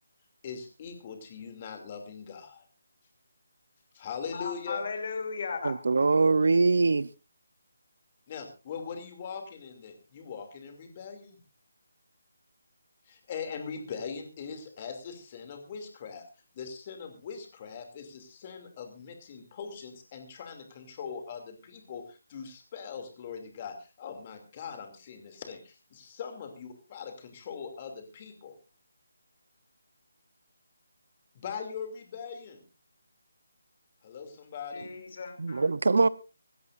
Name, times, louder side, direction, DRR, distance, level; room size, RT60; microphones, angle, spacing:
voice 1, 0.4-2.6 3.9-4.8 8.3-11.4 13.1-16.2 16.5-28.6 31.3-32.6 34.0-34.9, left 6 dB, 25° left, 2.7 m, -41 dB
voice 2, 4.3-5.8 34.7-35.7, left 5 dB, 40° left, 3.0 m, -36 dB
voice 3, 5.6-7.1 35.4-36.1, right 3 dB, 65° right, 0.7 m, -23 dB
25.5 x 13.5 x 2.6 m
hypercardioid pair, 170°, 0 cm